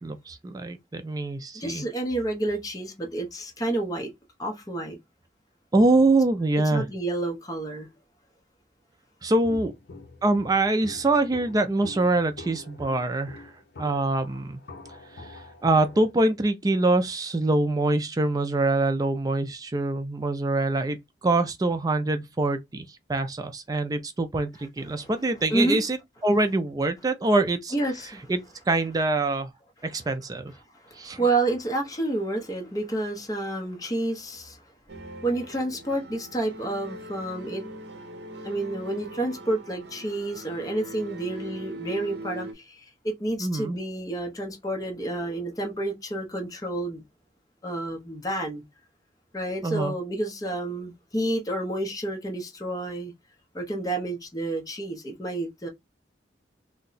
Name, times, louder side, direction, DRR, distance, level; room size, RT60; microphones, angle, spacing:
voice 1, 0.0-1.8 5.7-6.8 9.2-9.7 10.2-13.5 13.8-14.6 15.1-21.0 21.2-26.0 26.2-27.7 28.3-28.4 28.7-29.5 29.8-30.5 30.9-31.2 43.4-43.8 49.6-49.9, right 2 dB, 20° right, 0.3 m, -24 dB
voice 2, 1.5-4.1 4.4-5.0 6.7-7.9 24.9-25.1 25.5-25.8 27.7-28.3 30.8-34.6 35.2-37.6 38.4-47.0 47.6-48.6 49.3-53.1 53.5-55.7, right 2 dB, 20° left, 0.8 m, -29 dB
Walk footsteps, 9.4-16.1, left 2 dB, 65° left, 0.8 m, -45 dB
sound 1, 34.9-42.5, right 1 dB, 70° right, 0.7 m, -41 dB
2.7 x 2.2 x 3.9 m
head